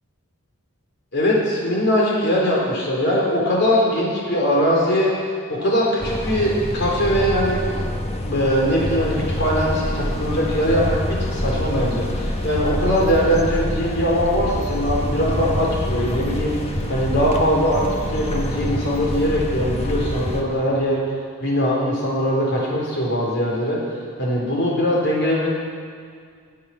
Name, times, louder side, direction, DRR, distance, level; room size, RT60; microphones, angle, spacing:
voice 1, 1.1-7.6 8.2-16.5 16.9-21.0 21.4-23.8 24.2-25.5, equal, 50° left, -4 dB, 4.0 m, -21 dB
sound 1, 6.0-20.4, left 1 dB, 25° left, 1.1 m, -26 dB
19.5 x 8.5 x 6.1 m, 2.1 s
head